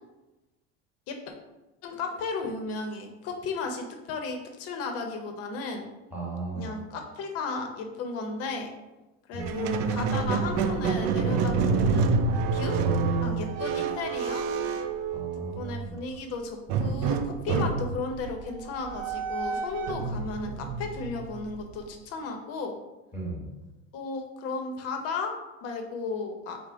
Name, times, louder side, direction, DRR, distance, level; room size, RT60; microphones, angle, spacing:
voice 1, 1.8-5.8 6.5-8.7 9.3-12.2 12.5-12.8 13.2-14.4 15.5-22.7 23.9-25.3 25.6-26.6, left 4 dB, 50° left, 4 dB, 0.7 m, -34 dB
voice 2, 6.1-6.7 9.3-9.5 15.1-16.0 23.1-23.5, right 3 dB, 5° right, -6 dB, 1.3 m, -36 dB
Squeak, 9.4-15.7 16.7-21.9, right 5 dB, 65° right, 0.5 m, -28 dB
4.9 x 2.1 x 3.7 m, 1.0 s
cardioid pair, 135°, 30 cm